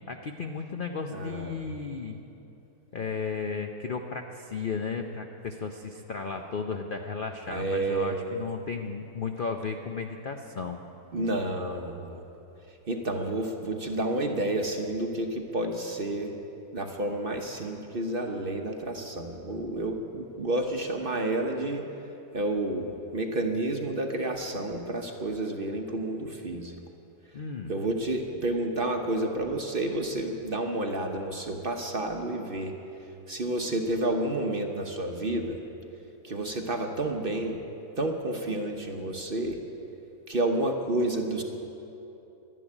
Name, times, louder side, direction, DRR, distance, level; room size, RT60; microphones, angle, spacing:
voice 1, 0.1-2.2 2.9-10.8 27.3-27.7, left 5 dB, 55° left, 4 dB, 0.6 m, -34 dB
voice 2, 1.1-1.6 7.5-8.4 11.1-12.2 12.9-16.4 16.7-21.8 22.3-26.8 27.7-32.7 33.3-35.6 36.2-37.6 38.0-39.6 40.3-41.4, right 1 dB, 40° right, 3 dB, 1.0 m, -30 dB
12.0 x 11.0 x 9.8 m, 3.0 s
omnidirectional pair, 1.7 m